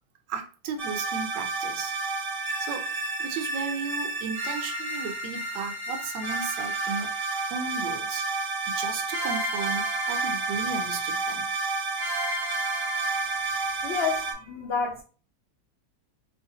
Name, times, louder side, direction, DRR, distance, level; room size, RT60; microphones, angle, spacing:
voice 1, 0.3-1.9 2.6-2.9 3.2-7.1 7.5-11.5, right 5 dB, 80° right, 1.3 m, -35 dB
sound 1, 0.8-14.3, right 3 dB, 40° right, 0.8 m, -30 dB
voice 2, 13.8-15.0, left 5 dB, 70° left, 0.6 m, -29 dB
3.1 x 3.1 x 2.7 m
omnidirectional pair, 1.9 m